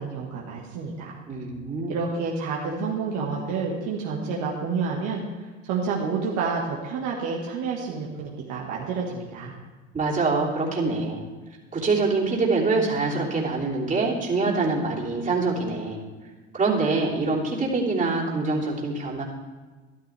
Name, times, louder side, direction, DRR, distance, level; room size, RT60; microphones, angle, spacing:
voice 1, 0.0-1.1 1.9-5.2 5.6-9.5, right 5 dB, 60° right, -2 dB, 1.9 m, -29 dB
voice 2, 1.3-1.9 9.9-11.2 11.7-16.0 16.5-19.2, right 3 dB, 25° right, -3 dB, 3.2 m, -25 dB
13.0 x 12.5 x 3.5 m, 1.3 s
hypercardioid pair, 80°, 32 cm